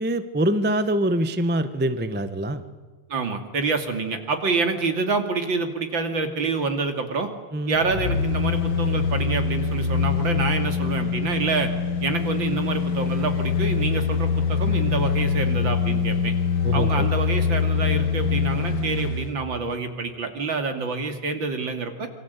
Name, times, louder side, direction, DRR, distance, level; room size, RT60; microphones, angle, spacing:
voice 1, 0.0-2.6 7.5-7.8 16.6-17.1, right 1 dB, 10° right, 10 dB, 0.7 m, -24 dB
voice 2, 3.1-7.3 7.7-11.7 12.0-16.3 16.7-22.1, right 4 dB, 60° right, 6 dB, 3.2 m, -27 dB
sound 1, 7.7-19.3 19.7-19.8, left 6 dB, 50° left, 2.4 m, -24 dB
27.0 x 24.5 x 8.2 m, 1.4 s
omnidirectional pair, 2.4 m